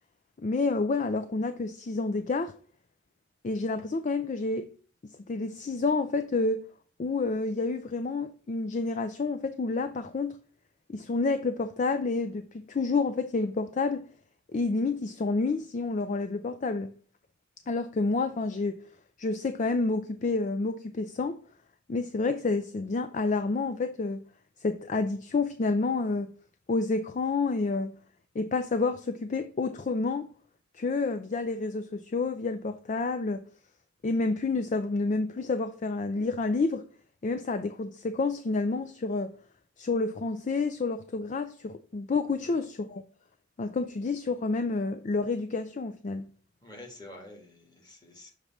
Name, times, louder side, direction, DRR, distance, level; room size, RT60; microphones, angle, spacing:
voice 1, 0.4-2.5 3.4-4.7 5.3-6.6 7.0-10.4 10.9-14.1 14.5-16.9 17.7-18.8 19.2-21.4 21.9-24.2 24.6-26.3 26.7-27.9 28.4-30.3 30.7-33.4 34.0-36.8 37.2-39.3 39.8-43.0 43.6-46.3, left 3 dB, 40° left, 0.4 m, -29 dB
voice 2, 46.6-48.3, left 1 dB, 20° left, 1.6 m, -48 dB
6.6 x 3.0 x 5.7 m
head